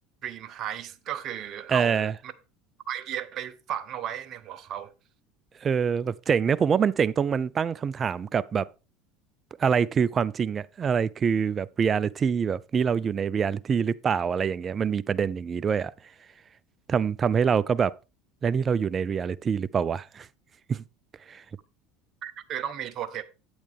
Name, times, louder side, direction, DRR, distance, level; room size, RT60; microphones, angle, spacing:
voice 1, 0.2-2.3 2.9-4.9 22.2-23.2, right 10 dB, 50° right, 1.0 m, -35 dB
voice 2, 1.7-2.1 5.6-8.7 9.6-15.9 16.9-17.9 18.4-20.3 20.7-20.8 21.3-21.4, right 6 dB, 30° right, 0.4 m, -25 dB
8.7 x 8.7 x 3.5 m
hypercardioid pair, 95°, 0 cm